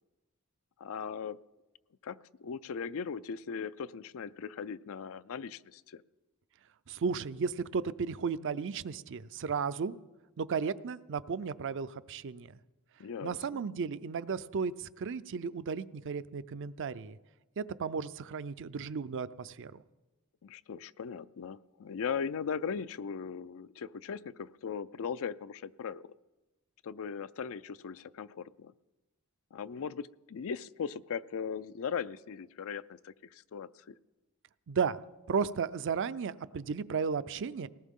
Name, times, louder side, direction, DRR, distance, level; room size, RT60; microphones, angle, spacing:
voice 1, 0.8-1.4 2.0-6.0 13.0-13.6 20.4-26.0 26.8-28.7 29.5-33.9, left 6 dB, 65° left, 16 dB, 0.4 m, -39 dB
voice 2, 6.9-10.0 10.4-12.6 13.2-17.2 17.6-19.8 34.7-35.0 35.3-37.7, right 5 dB, 60° right, 14 dB, 0.5 m, -34 dB
19.5 x 18.0 x 3.7 m, 1.1 s
head